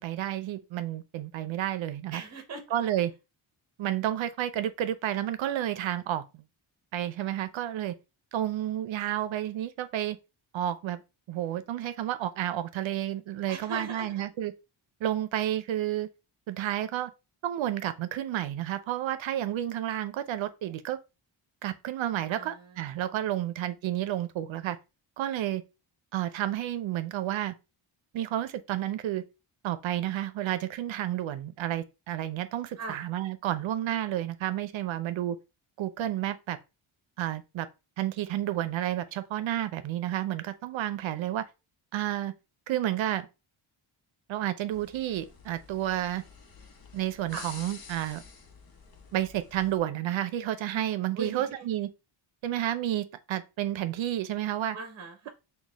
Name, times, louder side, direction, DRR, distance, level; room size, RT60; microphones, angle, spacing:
voice 1, 0.0-2.2 2.7-3.1 3.8-6.4 6.9-7.9 8.3-10.2 10.5-11.0 11.3-14.5 15.0-16.1 16.5-17.1 17.4-21.0 21.6-24.8 25.2-25.6 26.1-27.5 28.1-29.2 29.6-35.4 35.8-36.6 37.2-37.7 38.0-41.4 41.9-42.3 42.7-43.3 44.3-46.2 46.9-48.2 49.1-51.9 52.4-54.8, right 12 dB, 70° right, 0.6 m, -31 dB
voice 2, 2.1-2.8 13.5-14.3 22.3-23.3 32.8-33.0 47.3-47.5 51.1-51.7 54.7-55.3, right 3 dB, 30° right, 0.8 m, -41 dB
sound 1, 44.7-49.8, left 5 dB, 45° left, 0.9 m, -49 dB
4.0 x 2.3 x 3.3 m
wide cardioid pair, 140°, 49 cm